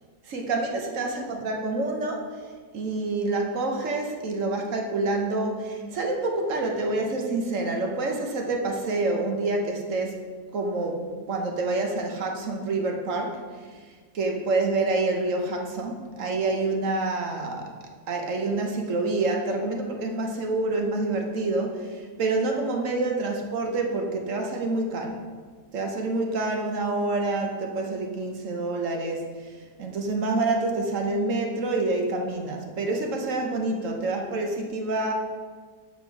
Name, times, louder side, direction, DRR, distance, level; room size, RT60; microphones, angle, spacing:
voice 1, 0.2-2.4 2.7-10.2 10.5-13.4 14.1-17.6 18.1-25.2 25.7-35.1, right 2 dB, 55° right, 2 dB, 1.2 m, -27 dB
7.4 x 4.4 x 4.6 m, 1.6 s
omnidirectional pair, 1.7 m